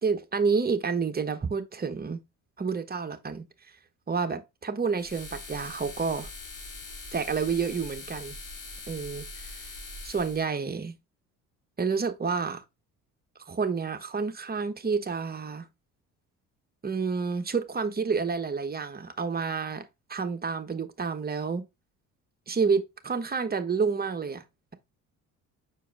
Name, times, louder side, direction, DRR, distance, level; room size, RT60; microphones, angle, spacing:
voice 1, 0.0-2.2 2.6-3.8 4.1-6.3 7.1-8.4 8.9-9.5 10.0-11.0 11.8-12.6 13.4-15.7 16.8-19.8 20.1-21.6 22.5-24.4, right 5 dB, 25° right, 1.3 m, -29 dB
sound 1, 5.0-10.5, left 3 dB, 75° left, 3.9 m, -42 dB
6.3 x 4.6 x 3.5 m
hypercardioid pair, 60°, 40 cm